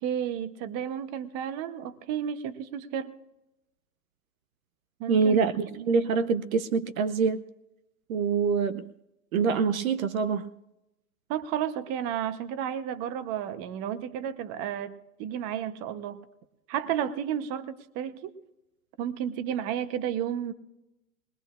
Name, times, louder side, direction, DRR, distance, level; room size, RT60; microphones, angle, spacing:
voice 1, 0.0-3.1 5.0-5.4 5.7-5.9 11.3-16.2 16.7-18.3 19.0-20.5, right 9 dB, 30° right, 0.9 m, -32 dB
voice 2, 5.1-7.4 8.1-8.9 9.3-10.5, right 5 dB, 60° right, 0.8 m, -25 dB
21.0 x 20.5 x 2.5 m
hypercardioid pair, 120°, 46 cm